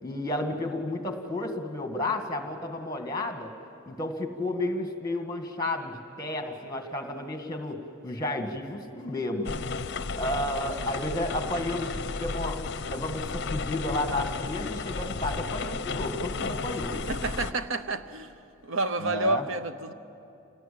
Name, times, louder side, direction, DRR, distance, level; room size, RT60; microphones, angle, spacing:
voice 1, 0.0-3.5 3.9-7.8 8.0-9.5 10.2-12.6 12.9-17.0 19.0-19.5, left 1 dB, 20° left, 5 dB, 1.9 m, -32 dB
sound 1, 9.4-17.5, left 4 dB, 55° left, 0.6 m, -33 dB
voice 2, 17.1-18.3 18.6-19.9, right 2 dB, 70° right, 10 dB, 0.8 m, -29 dB
27.5 x 18.5 x 8.6 m, 2.7 s
head